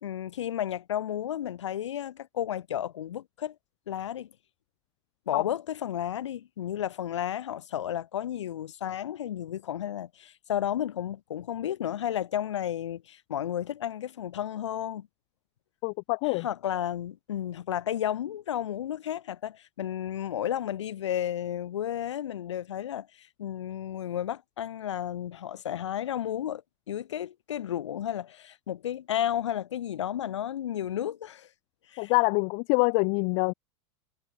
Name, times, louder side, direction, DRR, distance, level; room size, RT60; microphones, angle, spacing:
voice 1, 0.0-3.6 3.9-4.3 5.3-15.1 16.2-26.6 26.9-31.5 31.9-32.1, left 10 dB, 85° left, 2.0 m, -32 dB
voice 2, 15.8-16.4 32.0-33.5, left 40 dB or more, 50° left, 0.4 m, -25 dB
hypercardioid pair, 105°, 15 cm